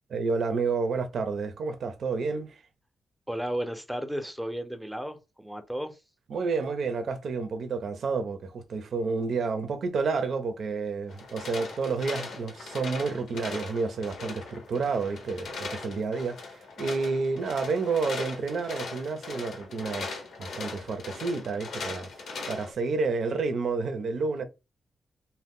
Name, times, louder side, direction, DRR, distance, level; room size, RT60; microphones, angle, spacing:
voice 1, 0.1-2.6 6.3-22.1 22.5-24.4, right 4 dB, 75° right, 0.6 m, -30 dB
voice 2, 3.3-6.0, equal, 5° right, 0.7 m, -34 dB
sound 1, 11.1-22.7, left 3 dB, 85° left, 0.8 m, -39 dB
2.7 x 2.1 x 3.6 m
cardioid pair, 85°, 0 cm